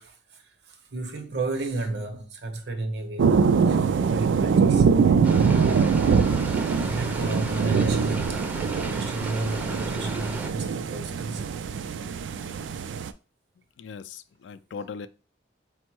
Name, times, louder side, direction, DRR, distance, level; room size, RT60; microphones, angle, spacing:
voice 1, 0.0-4.9 6.7-8.5 8.9-11.5, right 2 dB, 65° right, 0.8 m, -33 dB
sound 1, 3.2-13.1, right 5 dB, 90° right, 0.3 m, -23 dB
sound 2, 5.2-10.5, right 1 dB, 10° right, 0.4 m, -35 dB
voice 2, 13.8-15.1, left 5 dB, 80° left, 0.3 m, -39 dB
4.4 x 2.1 x 4.5 m
head